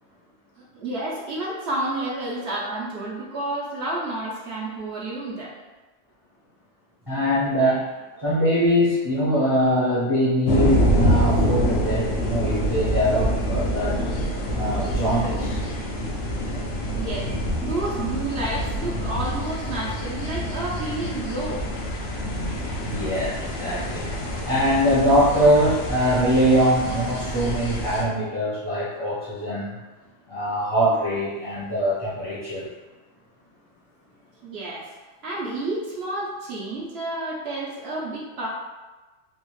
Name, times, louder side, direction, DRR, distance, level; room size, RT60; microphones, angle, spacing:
voice 1, 0.7-5.5 16.9-17.3 17.6-21.7 34.4-34.9 35.2-38.5, right 2 dB, 60° right, -5 dB, 0.9 m, -30 dB
voice 2, 7.1-7.9 8.2-14.0 14.5-15.6 22.8-24.1 24.4-29.8 30.3-32.6, equal, 25° right, -9 dB, 0.7 m, -22 dB
sound 1, 10.5-28.0, equal, 75° left, 0.9 m, -26 dB
3.4 x 2.4 x 3.1 m, 1.2 s
omnidirectional pair, 1.3 m